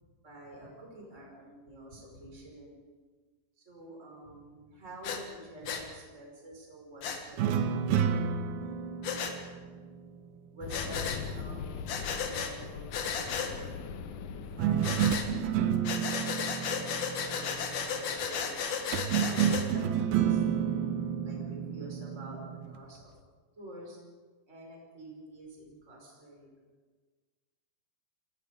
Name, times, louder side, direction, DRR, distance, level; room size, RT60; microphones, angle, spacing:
voice 1, 0.2-2.9 3.6-7.8 10.5-13.8 14.2-18.7 19.3-23.1 23.6-24.0 24.5-26.5, right 1 dB, 20° right, -1 dB, 5.6 m, -48 dB
Breathing, 5.0-5.2 5.7-5.8 7.0-7.2 9.0-9.3 10.7-11.2 11.9-12.5 12.9-13.5 14.8-15.3 15.8-19.7, left 6 dB, 85° left, 3.9 m, -34 dB
sound 1, 7.4-10.8 14.6-18.0 18.9-22.8, right 8 dB, 85° right, 3.0 m, -30 dB
sound 2, 10.6-15.8, left 5 dB, 70° left, 2.3 m, -41 dB
27.5 x 19.0 x 5.2 m, 1.4 s
omnidirectional pair, 4.2 m